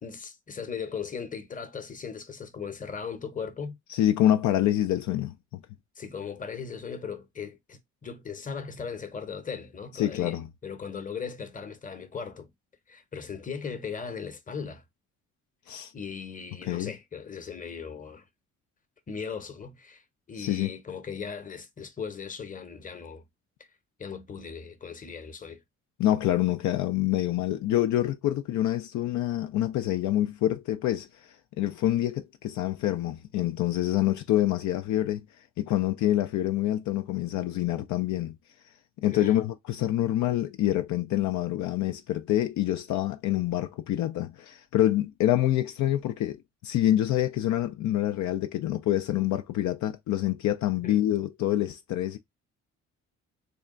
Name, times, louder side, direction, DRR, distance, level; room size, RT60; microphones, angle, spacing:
voice 1, 0.0-3.8 6.0-10.4 10.6-12.5 12.9-14.8 15.9-18.2 19.1-23.2 24.0-25.6 39.1-39.4 50.8-51.0, left 6 dB, 25° left, 0.9 m, -38 dB
voice 2, 3.9-5.6 10.0-10.5 15.7-15.9 16.7-16.9 20.4-20.7 26.0-35.3 35.6-38.4 39.0-46.4 46.6-52.2, left 13 dB, 70° left, 0.4 m, -26 dB
3.5 x 2.3 x 3.6 m
cardioid pair, 90°, 30 cm